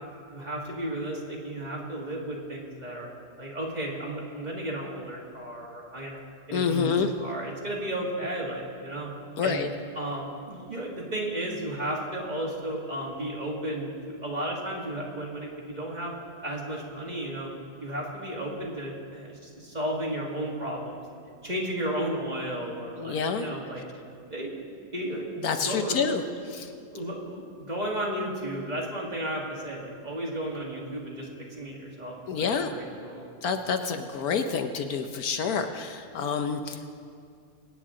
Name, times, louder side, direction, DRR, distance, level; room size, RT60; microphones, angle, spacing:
voice 1, 0.3-3.1 3.4-6.2 6.5-6.9 7.2-9.1 9.4-9.6 10.0-16.1 16.4-17.5 17.8-21.0 21.4-23.8 24.3-25.3 25.7-26.0 26.9-31.3 31.6-33.3, right 1 dB, 25° right, -3 dB, 1.9 m, -33 dB
voice 2, 6.5-7.1 9.4-9.7 23.0-23.5 25.4-26.2 26.5-26.7 32.3-32.7 33.4-36.9, left 6 dB, 70° left, 7 dB, 1.2 m, -28 dB
24.0 x 9.1 x 3.7 m, 2.3 s
omnidirectional pair, 1.7 m